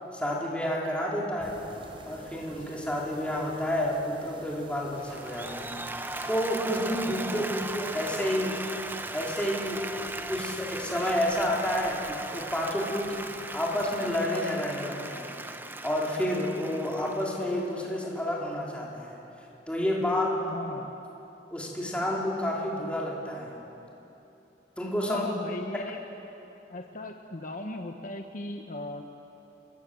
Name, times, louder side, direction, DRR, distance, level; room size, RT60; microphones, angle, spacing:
voice 1, 0.1-1.6 2.1-5.8 6.3-8.8 9.1-9.9 10.3-15.3 15.8-19.2 19.7-20.5 21.5-23.6 24.8-25.2 25.7-25.8, left 1 dB, 5° left, -4 dB, 4.3 m, -30 dB
sound 1, 1.4-14.3, right 1 dB, 30° right, 3.9 m, -49 dB
Applause, 5.0-18.2, right 2 dB, 10° right, 0.8 m, -38 dB
voice 2, 7.3-7.7 20.4-20.9 25.0-26.0 26.7-29.0, left 2 dB, 50° left, 3 dB, 1.2 m, -38 dB
29.0 x 21.0 x 8.0 m, 3.0 s
head